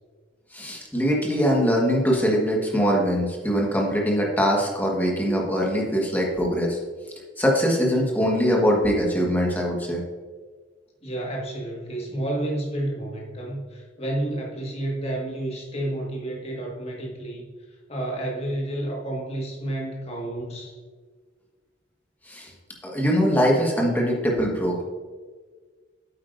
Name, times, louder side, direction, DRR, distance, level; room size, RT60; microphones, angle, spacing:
voice 1, 0.5-6.8 7.4-10.0 22.3-22.5 22.8-24.8, equal, 10° left, -2 dB, 1.4 m, -22 dB
voice 2, 11.0-17.4 17.9-20.7, right 1 dB, 35° left, -2 dB, 1.7 m, -30 dB
9.3 x 8.1 x 2.6 m, 1.5 s
head